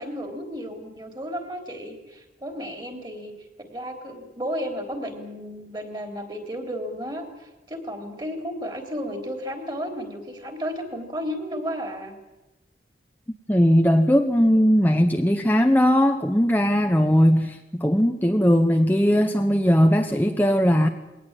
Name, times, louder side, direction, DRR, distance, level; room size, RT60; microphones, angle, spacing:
voice 1, 0.0-3.3 3.6-12.2, equal, 25° right, 5 dB, 3.7 m, -33 dB
voice 2, 13.5-20.9, equal, 10° left, 4 dB, 0.8 m, -19 dB
21.5 x 18.5 x 9.0 m, 1.0 s
head